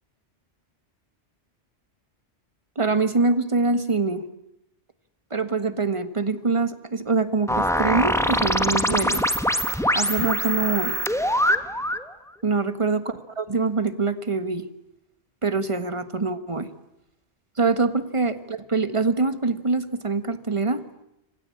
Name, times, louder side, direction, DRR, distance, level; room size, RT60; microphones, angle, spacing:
voice 1, 2.8-4.2 5.3-9.2 9.9-11.0 12.4-13.0 13.4-14.6 15.4-16.7 17.6-20.8, right 3 dB, 30° right, 10 dB, 1.5 m, -24 dB
sound 1, 7.5-12.1, equal, 5° left, 1.3 m, -23 dB
26.5 x 25.5 x 8.6 m, 0.82 s
omnidirectional pair, 1.2 m